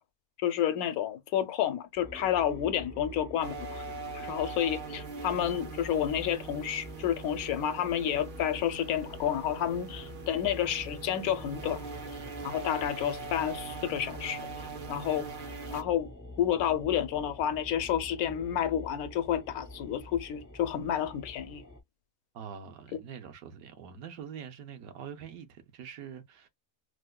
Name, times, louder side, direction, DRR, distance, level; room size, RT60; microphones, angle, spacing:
voice 1, 0.4-3.8 4.1-11.8 12.4-14.5 14.9-15.3 15.7-16.1 16.4-21.6, left 10 dB, 75° left, 1.0 m, -30 dB
sound 1, 2.0-21.8, left 1 dB, 30° left, 0.3 m, -46 dB
sound 2, 3.4-15.8, right 4 dB, 55° right, 0.5 m, -42 dB
voice 2, 22.3-26.5, right 7 dB, 70° right, 1.1 m, -44 dB
4.7 x 2.1 x 2.2 m
omnidirectional pair, 1.6 m